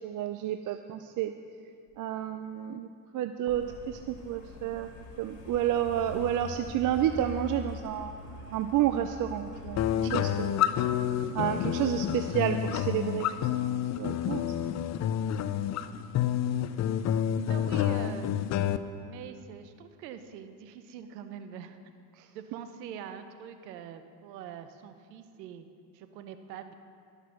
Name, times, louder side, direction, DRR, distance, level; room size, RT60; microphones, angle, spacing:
voice 1, 0.0-1.3 2.0-2.9 3.1-4.9 5.2-8.1 8.5-10.7 11.3-13.4 14.0-14.6 22.2-22.3, right 11 dB, 40° right, 9 dB, 0.5 m, -30 dB
Truck, 3.5-9.9, left 4 dB, 60° left, 2.3 m, -43 dB
sound 1, 9.8-18.8, left 10 dB, 35° left, 0.4 m, -29 dB
voice 2, 17.5-18.3 19.0-21.8 22.3-25.7 25.9-26.7, right 8 dB, 90° right, 9 dB, 0.8 m, -44 dB
12.0 x 6.6 x 6.2 m, 2.3 s
supercardioid pair, 80°, 48 cm